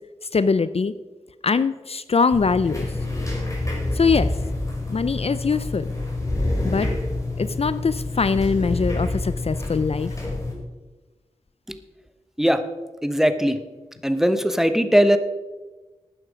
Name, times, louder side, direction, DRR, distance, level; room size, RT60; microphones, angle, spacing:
voice 1, 0.3-0.9 1.4-2.9 3.9-4.3 4.9-5.8 6.6-6.9 7.4-10.1, left 5 dB, 55° left, 14 dB, 0.5 m, -22 dB
sound 1, 2.3-10.5, left 2 dB, 25° left, 4.6 m, -27 dB
voice 2, 13.0-13.6 14.0-15.2, equal, 5° right, 9 dB, 1.1 m, -19 dB
13.0 x 9.1 x 5.0 m, 1.2 s
cardioid pair, 45°, 12 cm